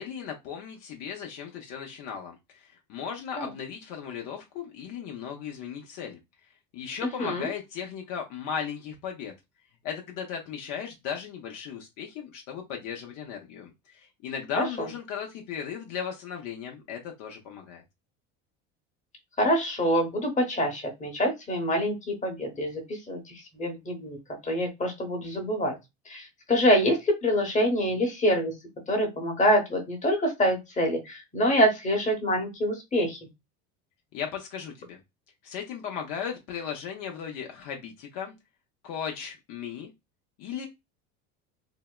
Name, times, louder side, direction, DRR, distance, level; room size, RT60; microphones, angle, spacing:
voice 1, 0.0-6.2 6.7-9.3 9.8-17.8 34.1-35.0 35.4-38.3 38.8-39.9 40.4-40.7, left 7 dB, 60° left, 2 dB, 0.7 m, -36 dB
voice 2, 19.4-22.8 23.1-23.2 23.5-24.2 24.4-25.7 26.1-28.5 28.9-33.2, equal, 20° left, 2 dB, 1.0 m, -25 dB
2.7 x 2.0 x 2.2 m, 0.21 s
supercardioid pair, 85°, 36 cm